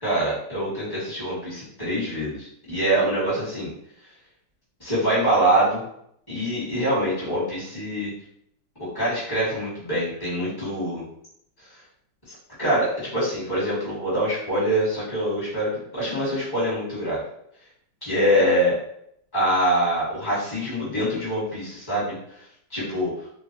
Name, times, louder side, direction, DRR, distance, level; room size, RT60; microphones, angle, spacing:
voice 1, 0.0-3.7 4.8-5.8 6.3-8.1 8.8-11.0 12.6-17.2 18.0-18.8 19.3-22.2 22.7-23.1, right 1 dB, 15° left, -9 dB, 1.1 m, -24 dB
3.3 x 2.5 x 2.8 m, 0.72 s
omnidirectional pair, 2.3 m